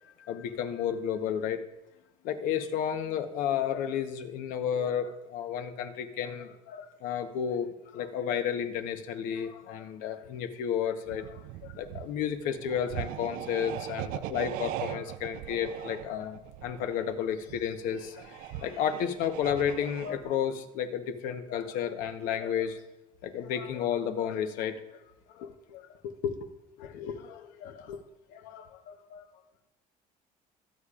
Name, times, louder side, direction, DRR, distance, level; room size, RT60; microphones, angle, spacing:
voice 1, 0.2-1.6 2.2-22.8 23.2-24.7 25.3-26.4 26.8-28.0 28.3-29.3, left 8 dB, 70° left, 8 dB, 1.1 m, -32 dB
sound 1, 11.0-20.4, right 13 dB, 85° right, 0.5 m, -40 dB
23.0 x 8.4 x 2.5 m, 0.96 s
cardioid pair, 170°, 15 cm